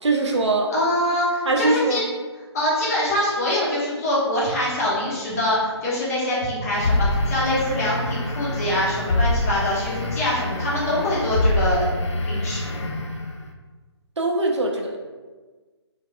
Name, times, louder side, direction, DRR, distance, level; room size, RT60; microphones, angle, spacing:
voice 1, 0.0-0.7 1.5-2.0 14.2-15.0, right 2 dB, 75° right, 1 dB, 0.6 m, -22 dB
voice 2, 0.7-2.0 2.5-11.9 12.2-12.7, left 1 dB, 35° left, -7 dB, 1.0 m, -24 dB
sound 1, 6.8-13.5, left 1 dB, 80° left, 0.4 m, -25 dB
3.2 x 2.4 x 2.4 m, 1.3 s
figure-of-eight pair, 150°, 15 cm